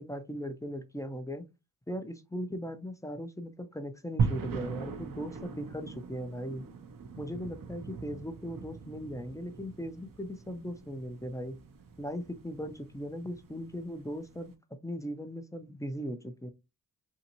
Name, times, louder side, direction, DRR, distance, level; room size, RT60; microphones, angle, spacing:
voice 1, 0.0-1.4 1.9-6.6 7.2-11.6 12.0-14.5 14.8-16.5, equal, 10° left, 0.5 m, -38 dB
sound 1, 4.2-14.4, right 5 dB, 60° right, 0.6 m, -39 dB
2.8 x 2.5 x 2.7 m
cardioid pair, 55°, 37 cm